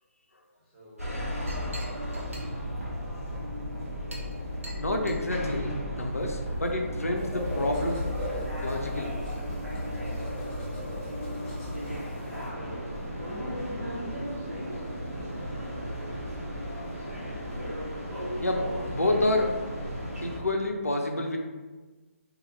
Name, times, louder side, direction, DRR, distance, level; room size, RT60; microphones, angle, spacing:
voice 1, 0.6-1.9 12.1-16.7, equal, 10° right, -14 dB, 1.2 m, -49 dB
Chink clink, 1.0-6.3, right 1 dB, 65° right, 0.7 m, -48 dB
sound 1, 1.0-20.4, equal, 90° right, 0.9 m, -34 dB
voice 2, 4.8-8.1 8.6-9.2 18.2-19.5 20.2-21.4, left 2 dB, 85° left, 2 dB, 0.4 m, -29 dB
sound 2, 7.1-12.5, equal, 10° left, 0.6 m, -40 dB
2.6 x 2.3 x 3.1 m, 1.3 s
figure-of-eight pair, 140°, 8 cm